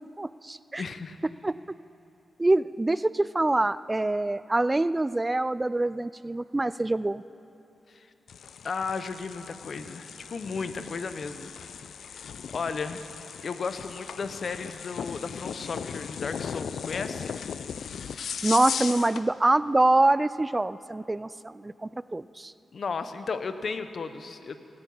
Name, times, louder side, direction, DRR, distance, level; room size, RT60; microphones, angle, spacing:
voice 1, 0.2-0.8 1.4-1.8 2.4-7.2 18.4-22.5, right 2 dB, 25° right, 16 dB, 0.3 m, -25 dB
voice 2, 0.8-1.2 7.9-8.1 8.6-11.5 12.1-12.2 12.5-13.0 13.4-17.3 22.7-24.6, left 5 dB, 60° left, 10 dB, 0.9 m, -34 dB
sound 1, 8.3-19.3, left 7 dB, 75° left, 0.5 m, -37 dB
18.0 x 8.9 x 8.6 m, 2.9 s
cardioid pair, 55°, 0 cm